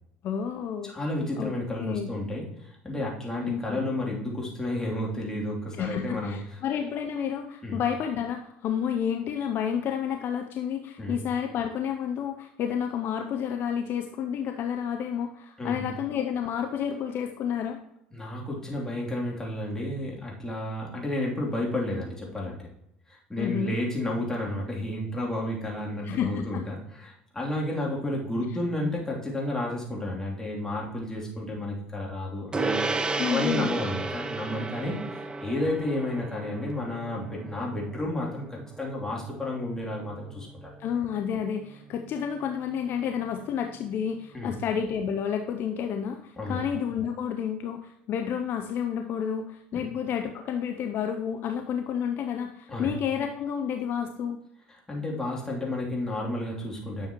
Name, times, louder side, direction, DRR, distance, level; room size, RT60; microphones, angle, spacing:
voice 1, 0.2-0.9 1.4-2.1 3.4-3.8 5.7-17.8 23.4-23.7 26.0-26.7 33.2-33.8 40.8-54.4, left 8 dB, 50° left, 6 dB, 0.6 m, -30 dB
voice 2, 0.8-6.6 7.6-7.8 11.0-11.2 15.6-15.9 18.1-22.7 23.1-40.7 44.3-44.5 46.4-46.6 49.7-49.8 52.7-52.9 54.7-57.1, left 1 dB, 10° left, -3 dB, 3.0 m, -32 dB
Gong, 32.5-42.2, right 3 dB, 20° right, 0.6 m, -34 dB
10.0 x 6.5 x 3.0 m, 0.81 s
figure-of-eight pair, 65°, 5 cm